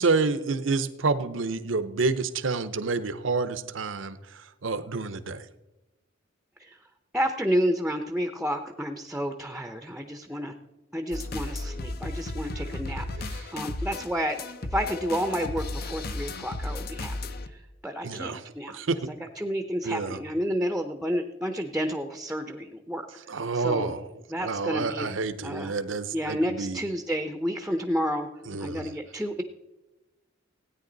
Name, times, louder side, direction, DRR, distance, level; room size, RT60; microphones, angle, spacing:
voice 1, 0.0-5.5 13.1-13.5 18.0-18.4 18.7-19.0 19.8-20.2 23.3-24.0 24.4-26.8 28.5-28.9, right 4 dB, 70° right, 12 dB, 0.8 m, -28 dB
voice 2, 7.1-10.5 10.9-23.1 23.5-23.9 24.3-25.1 25.4-25.7 26.1-28.3 28.6-29.4, equal, 5° right, 6 dB, 0.7 m, -30 dB
sound 1, 11.1-17.5, left 2 dB, 50° left, 0.7 m, -34 dB
17.0 x 9.3 x 4.0 m, 1.0 s
head